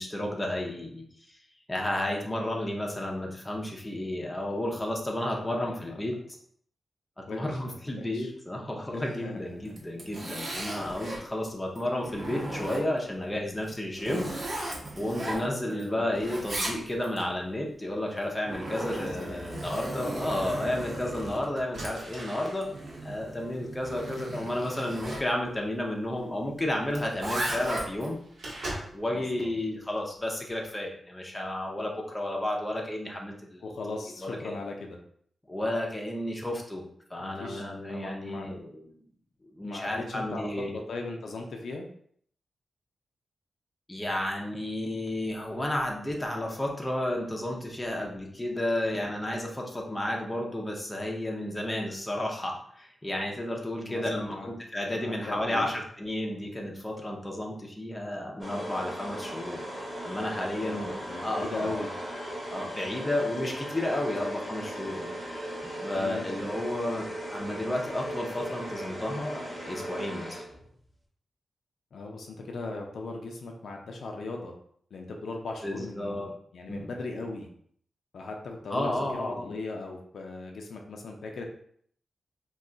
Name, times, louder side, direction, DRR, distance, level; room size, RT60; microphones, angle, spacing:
voice 1, 0.0-1.4 1.7-6.2 7.2-14.3 15.0-22.7 23.0-28.2 28.9-33.7 34.2-34.6 35.5-36.8 37.1-39.0 39.5-40.7 43.9-59.6 60.0-60.9 61.2-61.8 62.5-70.4 75.6-76.3 76.7-76.9 78.7-79.5, left 1 dB, 10° left, -1 dB, 0.5 m, -32 dB
voice 2, 5.3-5.9 7.3-8.3 8.9-9.4 14.0-14.3 15.7-16.2 18.9-19.5 29.1-29.6 33.6-35.0 37.2-38.5 39.6-41.9 53.8-54.5 55.0-55.7 60.6-61.9 65.9-66.3 71.9-74.5 74.9-77.5 78.1-81.4, left 3 dB, 75° left, 2 dB, 0.5 m, -39 dB
Zipper (clothing), 9.6-11.2 11.8-13.1 13.6-15.8 16.1-17.2 18.1-25.3 26.9-28.1, right 1 dB, 45° right, 0.7 m, -36 dB
sound 1, 21.7-29.2 29.6-30.0 30.4-30.7, right 1 dB, 90° right, 1.0 m, -43 dB
sound 2, 58.4-70.8, equal, 20° right, 1.0 m, -38 dB
2.3 x 2.2 x 3.7 m, 0.62 s
wide cardioid pair, 140°, 0 cm